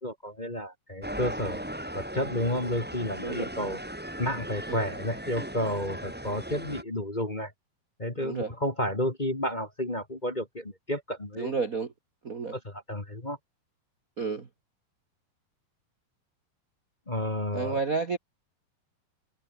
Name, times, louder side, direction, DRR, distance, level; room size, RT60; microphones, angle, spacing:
voice 1, 0.0-1.6 1.9-3.8 4.2-7.5 8.0-11.5 12.5-13.4 17.1-17.8, left 1 dB, 15° left, 1.5 m, -31 dB
sound 1, 1.0-6.8, right 1 dB, 5° right, 1.5 m, -38 dB
voice 2, 8.2-8.5 11.4-11.9 12.2-12.6 14.2-14.5 17.5-18.2, right 4 dB, 75° right, 0.8 m, -31 dB
omnidirectional pair, 4.3 m